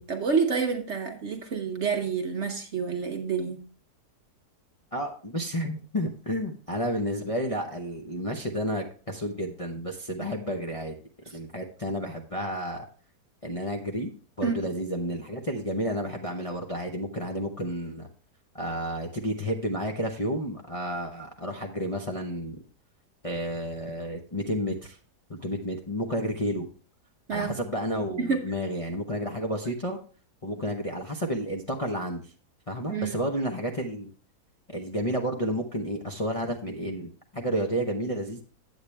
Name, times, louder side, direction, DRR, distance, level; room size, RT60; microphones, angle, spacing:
voice 1, 0.0-3.6 14.4-14.6 27.3-27.6 28.2-28.5 32.9-33.2, right 5 dB, 55° right, 0.9 m, -28 dB
voice 2, 4.9-10.9 11.3-12.9 13.4-14.1 14.4-18.1 18.5-22.6 23.2-25.0 25.3-26.7 27.3-30.0 30.4-32.3 32.7-34.1 34.7-38.4, equal, 30° left, 0.7 m, -31 dB
8.5 x 8.3 x 3.3 m
omnidirectional pair, 1.7 m